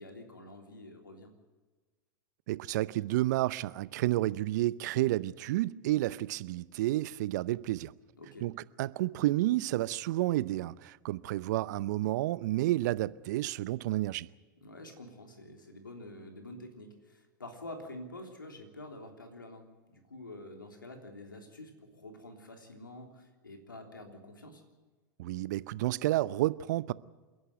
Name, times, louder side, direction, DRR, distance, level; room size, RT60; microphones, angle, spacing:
voice 1, 0.0-1.3 8.2-8.5 14.6-24.6, left 1 dB, 90° left, 3.3 m, -48 dB
voice 2, 2.5-7.9 8.4-8.5 8.8-14.3 25.2-26.9, right 16 dB, 60° right, 0.7 m, -30 dB
28.0 x 11.0 x 9.3 m
hypercardioid pair, 95°, 11 cm